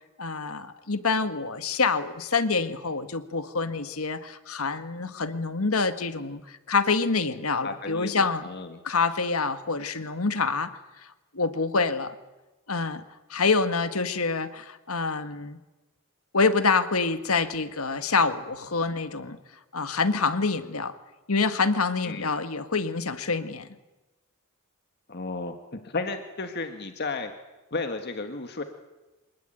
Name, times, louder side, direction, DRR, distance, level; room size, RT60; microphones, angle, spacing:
voice 1, 0.0-8.4 8.8-10.8 11.3-12.1 12.7-13.0 13.3-15.6 16.3-19.4 19.7-21.0 21.3-23.7, left 4 dB, 75° left, 10 dB, 1.7 m, -26 dB
voice 2, 7.6-8.8 22.0-22.3 25.1-27.3 27.7-28.6, left 3 dB, 50° left, 6 dB, 1.7 m, -33 dB
25.5 x 20.0 x 9.2 m, 1.1 s
head